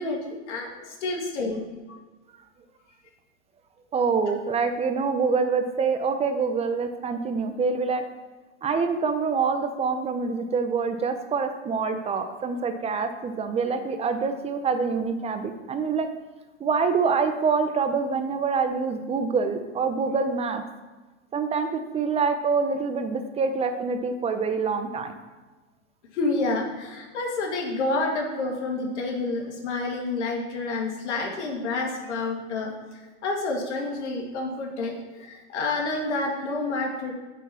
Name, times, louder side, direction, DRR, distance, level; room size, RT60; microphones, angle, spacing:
voice 1, 0.0-1.6 1.9-2.0 26.1-32.7 33.2-37.1, left 3 dB, 70° left, 1 dB, 2.1 m, -29 dB
voice 2, 3.9-8.0 8.6-16.1 16.6-20.6 21.3-25.1, right 5 dB, 15° right, 8 dB, 0.7 m, -26 dB
6.2 x 5.8 x 7.0 m, 1.3 s
hypercardioid pair, 120°, 36 cm